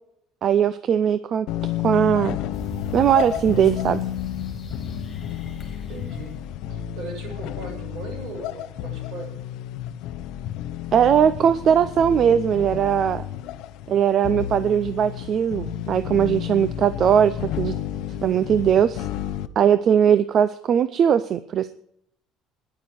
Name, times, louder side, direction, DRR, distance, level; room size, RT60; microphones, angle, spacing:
voice 1, 0.4-1.5 1.8-2.4 2.9-4.0 10.9-13.2 13.9-17.8 18.2-19.1 19.6-21.7, right 8 dB, 35° right, 15 dB, 0.4 m, -19 dB
sound 1, 1.5-19.5, left 11 dB, 65° left, 0.8 m, -31 dB
sound 2, 2.5-6.5, left 2 dB, 20° left, 2.9 m, -37 dB
voice 2, 5.9-6.3 6.7-9.3, right 3 dB, 55° right, 1 dB, 6.3 m, -38 dB
10.5 x 9.5 x 9.2 m, 0.74 s
cardioid pair, 175°, 0 cm